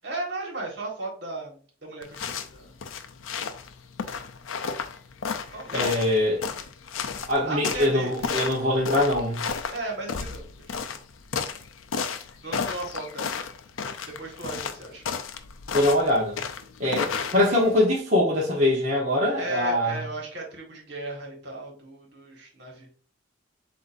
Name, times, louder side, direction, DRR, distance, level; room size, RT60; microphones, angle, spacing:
voice 1, 0.0-2.8 5.5-6.6 7.4-8.5 9.7-10.4 10.8-10.9 12.4-13.3 14.2-15.0 17.1-17.3 19.4-22.9, right 2 dB, 55° right, -1 dB, 1.7 m, -36 dB
sound 1, 2.0-17.8, left 6 dB, 80° left, 0.5 m, -33 dB
voice 2, 5.7-6.4 7.3-9.4 15.7-16.4 16.8-20.0, left 1 dB, 35° right, -6 dB, 1.0 m, -23 dB
7.6 x 2.7 x 2.6 m, 0.42 s
head